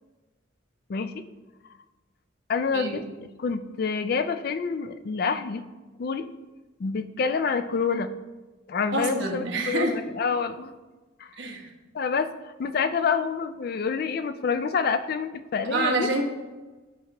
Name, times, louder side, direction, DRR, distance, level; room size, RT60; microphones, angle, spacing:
voice 1, 0.9-1.2 2.5-3.0 3.4-5.6 6.0-6.3 6.8-8.1 8.7-10.7 11.2-11.3 11.9-12.3 12.6-16.1, left 5 dB, 50° left, 11 dB, 0.3 m, -27 dB
voice 2, 8.9-9.9 11.4-11.6 15.7-16.2, right 2 dB, 70° right, 1 dB, 1.1 m, -26 dB
9.1 x 4.6 x 3.0 m, 1.2 s
head